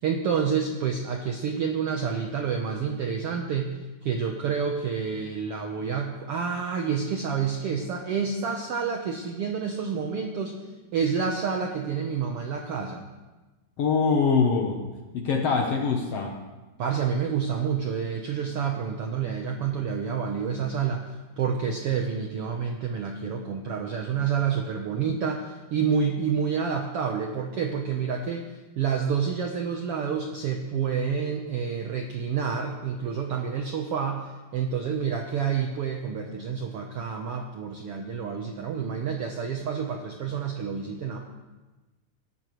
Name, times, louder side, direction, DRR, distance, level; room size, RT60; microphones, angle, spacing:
voice 1, 0.0-10.6 10.9-13.1 16.8-21.1 21.4-41.2, right 6 dB, 75° right, 2 dB, 1.3 m, -28 dB
voice 2, 13.8-16.3, left 5 dB, 65° left, 2 dB, 1.6 m, -24 dB
19.0 x 12.5 x 3.1 m, 1.2 s
omnidirectional pair, 3.8 m